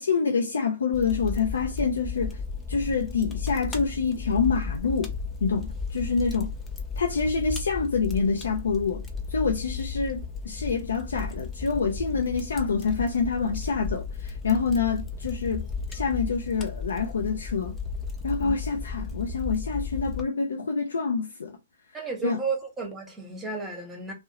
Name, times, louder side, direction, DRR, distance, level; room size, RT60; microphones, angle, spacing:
voice 1, 0.0-2.4 2.7-5.1 5.4-6.5 7.0-17.8 18.2-21.6 22.2-22.4, left 5 dB, 90° left, 0.4 m, -27 dB
Fire, 0.9-20.2, left 4 dB, 15° left, 0.5 m, -34 dB
voice 2, 21.9-24.1, right 4 dB, 5° right, 0.9 m, -33 dB
2.4 x 2.0 x 2.8 m
hypercardioid pair, 145°, 0 cm